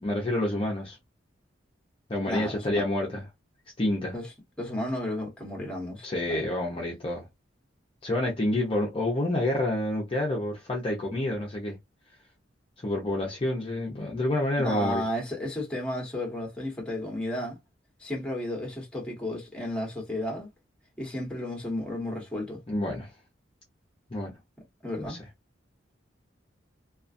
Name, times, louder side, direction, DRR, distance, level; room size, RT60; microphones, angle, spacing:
voice 1, 0.0-1.0 2.1-3.2 3.8-4.1 6.0-7.2 8.0-11.8 12.8-15.0 22.7-23.1 24.1-24.3 25.0-25.2, left 1 dB, 30° left, 0.6 m, -28 dB
voice 2, 2.3-2.8 4.1-4.3 4.6-6.4 14.6-17.6 18.0-20.5 21.0-22.6 24.8-25.2, left 1 dB, 5° left, 1.1 m, -33 dB
2.4 x 2.3 x 2.5 m
head